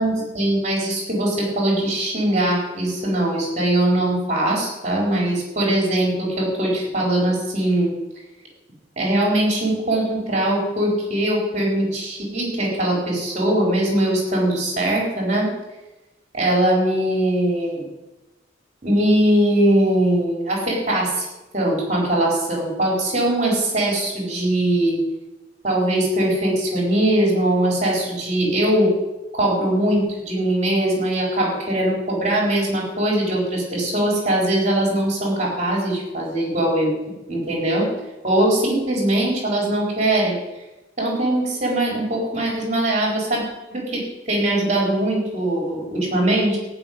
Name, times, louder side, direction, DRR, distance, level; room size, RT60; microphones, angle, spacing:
voice 1, 0.0-7.9 9.0-15.5 16.3-17.9 18.8-21.3 21.5-25.0 25.6-28.9 29.3-36.9 37.3-37.9 38.2-40.4 41.0-43.4 43.7-46.6, right 1 dB, 40° right, -2 dB, 4.5 m, -21 dB
15.0 x 5.9 x 9.6 m, 1.0 s
head